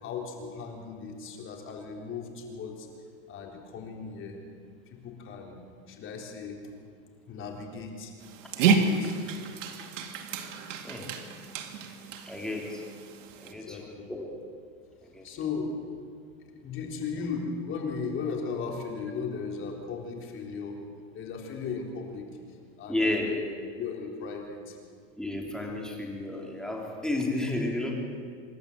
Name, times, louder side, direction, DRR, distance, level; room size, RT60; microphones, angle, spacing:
voice 1, 0.0-2.9 3.3-4.4 4.9-5.6 5.9-6.6 7.3-8.2 8.6-9.2 13.5-14.0 15.2-15.8 16.5-20.8 21.1-22.3 22.8-23.4 23.8-24.8, left 5 dB, 30° left, 1 dB, 3.9 m, -36 dB
Dog, 8.2-13.5, right 4 dB, 80° right, 2.3 m, -30 dB
voice 2, 12.2-12.8 13.4-14.3 15.0-15.4 22.9-23.3 25.2-27.9, left 2 dB, ahead, -1 dB, 3.3 m, -32 dB
27.0 x 12.0 x 8.1 m, 2.2 s
supercardioid pair, 145°, 37 cm